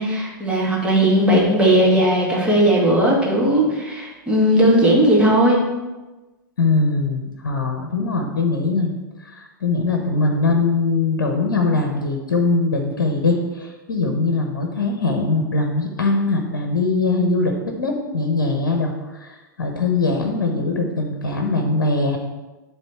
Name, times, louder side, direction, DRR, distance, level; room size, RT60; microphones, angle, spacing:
voice 1, 0.0-5.6, right 1 dB, 10° right, -4 dB, 2.2 m, -17 dB
voice 2, 6.6-9.0 9.2-22.2, left 3 dB, 65° left, 3 dB, 1.0 m, -21 dB
10.0 x 3.7 x 4.4 m, 1.1 s
figure-of-eight pair, 95°, 11 cm